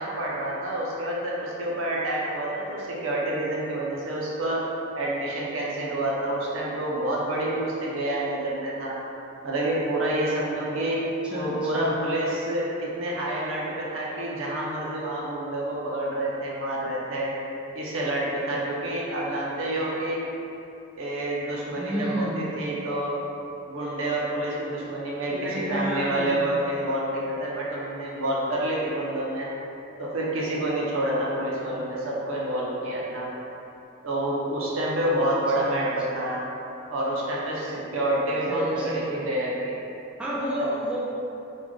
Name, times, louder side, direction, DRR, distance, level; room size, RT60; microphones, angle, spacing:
voice 1, 0.0-4.6 5.0-9.0 9.4-11.0 11.3-17.3 17.7-20.2 21.0-23.2 23.7-25.3 25.7-29.5 30.0-33.3 34.0-36.4 36.9-39.7, right 1 dB, 80° right, -5 dB, 0.6 m, -28 dB
voice 2, 11.3-12.0 21.8-22.5 25.3-26.5 31.6-31.9 35.2-35.9 38.5-39.3 40.2-41.0, right 1 dB, 5° right, -9 dB, 0.3 m, -31 dB
2.4 x 2.2 x 3.7 m, 2.8 s
head